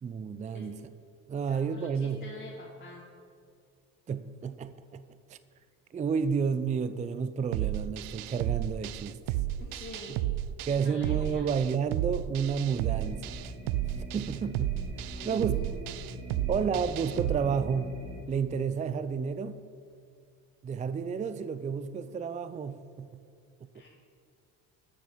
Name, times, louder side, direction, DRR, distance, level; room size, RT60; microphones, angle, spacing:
voice 1, 0.0-0.8 1.3-2.2 4.1-5.0 5.3-5.4 5.9-9.4 10.7-13.3 14.1-14.7 15.0-15.6 16.5-18.0 18.3-19.6 20.6-23.1, right 6 dB, 20° right, 13 dB, 0.4 m, -31 dB
voice 2, 1.5-3.0 9.6-10.2 10.6-11.5 15.1-15.7 23.7-23.9, left 2 dB, 25° left, -4 dB, 2.2 m, -46 dB
sound 1, 7.5-17.4, right 13 dB, 75° right, 0.5 m, -33 dB
sound 2, 12.6-18.2, right 1 dB, 50° right, 3.4 m, -43 dB
13.5 x 6.9 x 6.1 m, 2.3 s
supercardioid pair, 85°, 36 cm